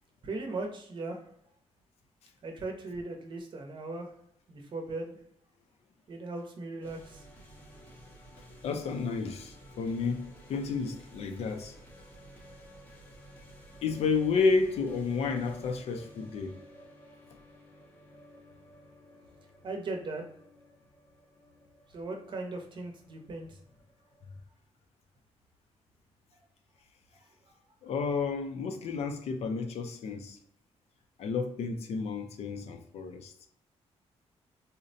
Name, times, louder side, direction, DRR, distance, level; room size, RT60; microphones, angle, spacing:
voice 1, 0.2-1.2 2.4-4.1 4.5-5.2 6.1-7.2 19.6-20.3 21.9-23.6 27.5-27.6, right 2 dB, 45° right, 0.6 m, -38 dB
sound 1, 6.8-24.4, equal, 15° left, 0.6 m, -54 dB
voice 2, 8.6-11.8 13.8-16.6 27.8-30.4 31.2-33.5, left 4 dB, 65° left, 0.4 m, -31 dB
3.8 x 2.1 x 2.6 m
wide cardioid pair, 160°, 11 cm